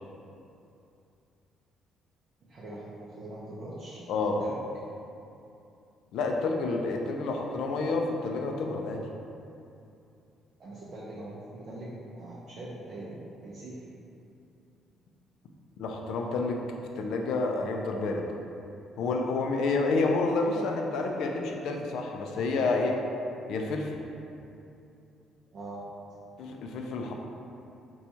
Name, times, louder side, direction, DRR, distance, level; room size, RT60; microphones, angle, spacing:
voice 1, 2.4-4.0 4.4-4.6 10.6-13.9 25.5-25.9 26.2-26.3, right 1 dB, 40° right, -8 dB, 0.5 m, -42 dB
voice 2, 4.1-4.4 6.1-9.1 15.8-16.7 17.0-18.2 19.0-23.0 23.5-24.0 26.4-27.1, left 3 dB, 70° left, 2 dB, 0.3 m, -29 dB
4.3 x 2.3 x 2.7 m, 2.7 s
cardioid pair, 165°, 0 cm